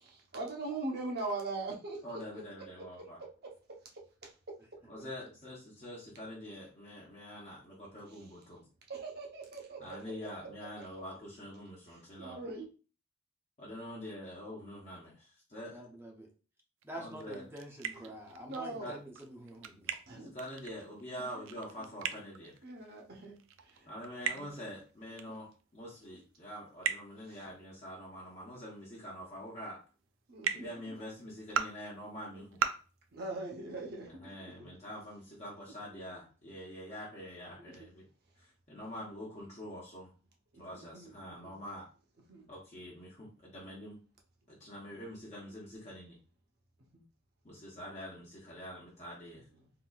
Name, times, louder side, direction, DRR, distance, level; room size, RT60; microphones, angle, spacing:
voice 1, 0.3-2.4 2.7-3.1 3.4-3.5 3.9-4.3 8.1-8.2 8.9-10.0 11.9-12.7 17.9-19.0 20.1-20.3 22.6-23.4 23.6-23.9 24.2-24.5 27.3-27.4 30.3-30.9 33.1-34.1 35.9-36.0 37.6-37.7 40.5-41.6 42.3-42.5 44.8-44.9 46.9-47.1 49.5-49.7, right 3 dB, 55° right, 1 dB, 0.9 m, -42 dB
voice 2, 2.0-3.2 4.8-8.6 9.8-12.4 13.6-15.8 17.0-17.4 18.8-18.9 20.2-22.5 23.9-25.5 25.7-29.8 30.5-32.6 34.1-38.1 38.4-40.1 40.6-41.8 42.5-44.0 44.6-46.1 47.4-49.4, equal, 35° left, -5 dB, 0.8 m, -45 dB
voice 3, 15.7-16.3 16.8-20.0, right 1 dB, 10° right, 0 dB, 0.6 m, -47 dB
sound 1, 16.8-18.7 19.0-22.9 23.2-24.9 25.2-25.3 25.6-25.7 26.8-26.9 29.1-29.2 30.4-30.5 31.3-31.6 32.5-32.7, right 7 dB, 70° right, 0.4 m, -36 dB
3.8 x 2.7 x 2.3 m, 0.35 s
head